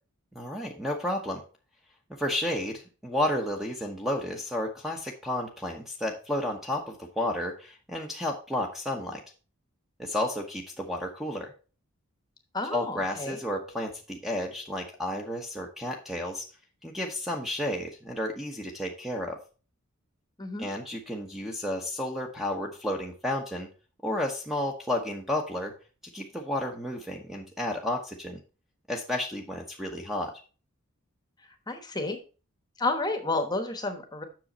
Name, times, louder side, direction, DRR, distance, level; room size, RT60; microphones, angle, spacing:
voice 1, 0.3-1.4 2.2-9.2 10.0-11.5 12.7-16.5 16.8-19.4 20.6-23.7 24.0-25.7 26.1-28.4 28.9-30.3, left 1 dB, ahead, 1 dB, 0.9 m, -32 dB
voice 2, 12.5-13.4 20.4-20.7 31.7-32.2 32.8-34.2, left 2 dB, 20° left, 6 dB, 1.1 m, -30 dB
7.6 x 6.4 x 4.1 m, 0.35 s
head